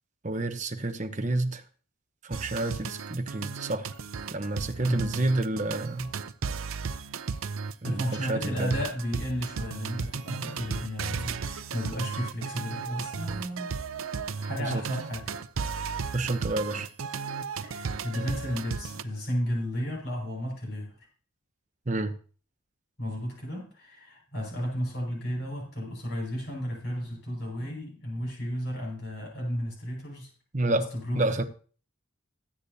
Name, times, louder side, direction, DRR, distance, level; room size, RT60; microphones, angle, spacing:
voice 1, 0.2-1.6 2.2-3.9 4.3-6.1 6.7-6.8 7.8-8.7 14.6-14.8 16.1-16.9 21.9-22.1 30.5-30.9 31.1-31.4, right 2 dB, 35° right, 1.0 m, -29 dB
sound 1, 2.3-19.0, right 5 dB, 75° right, 0.6 m, -35 dB
voice 2, 4.8-5.2 7.8-13.8 14.0-15.3 17.6-20.9 23.0-30.3 30.7-31.5, equal, 50° left, 5.5 m, -33 dB
19.5 x 8.3 x 2.8 m
head